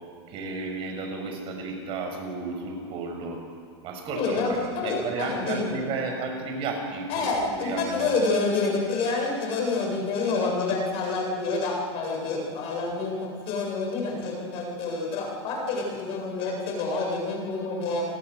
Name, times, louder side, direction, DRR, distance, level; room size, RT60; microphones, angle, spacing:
voice 1, 0.3-3.4 3.8-8.1, right 3 dB, 35° right, 3 dB, 6.7 m, -33 dB
voice 2, 4.1-5.8 7.1-18.0, left 3 dB, 40° left, 0 dB, 8.0 m, -28 dB
29.5 x 20.0 x 6.9 m, 2.1 s
hypercardioid pair, 130°, 15 cm